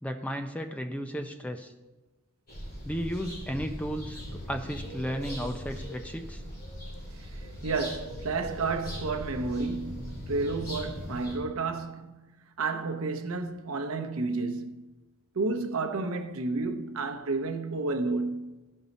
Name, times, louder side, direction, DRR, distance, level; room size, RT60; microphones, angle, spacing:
voice 1, 0.0-1.7 2.8-6.4, equal, 5° left, 0.4 m, -34 dB
sound 1, 2.5-11.4, equal, 40° left, 3.6 m, -39 dB
voice 2, 7.3-14.9 15.4-18.6, right 3 dB, 75° right, 0.7 m, -31 dB
14.5 x 5.5 x 4.0 m
head